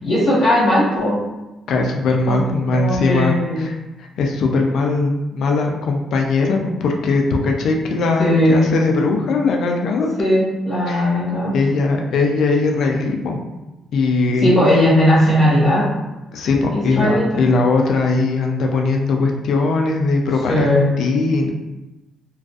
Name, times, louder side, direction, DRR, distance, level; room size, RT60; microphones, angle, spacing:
voice 1, 0.0-1.2 2.3-2.4 2.7-3.7 8.2-8.6 10.2-11.6 14.4-15.9 16.7-17.3 20.5-20.9, left 1 dB, 45° left, -9 dB, 1.2 m, -17 dB
voice 2, 1.7-10.1 10.9-11.1 11.5-13.4 13.9-14.5 16.3-20.6 21.0-21.5, left 3 dB, 70° left, 2 dB, 0.4 m, -19 dB
2.4 x 2.3 x 2.3 m, 1.0 s
cardioid pair, 90°, 0 cm